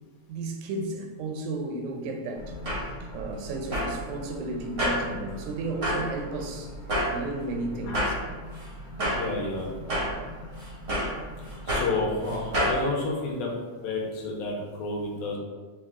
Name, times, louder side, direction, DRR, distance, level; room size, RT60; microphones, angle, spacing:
voice 1, 0.3-6.7 7.1-8.1, right 2 dB, 85° right, 3 dB, 2.0 m, -34 dB
sound 1, 2.4-12.8, equal, 60° right, 0.7 m, -31 dB
voice 2, 9.1-9.7 11.4-13.5 13.8-15.4, left 3 dB, 75° left, -1 dB, 1.8 m, -31 dB
6.2 x 2.3 x 3.5 m, 1.4 s
omnidirectional pair, 3.3 m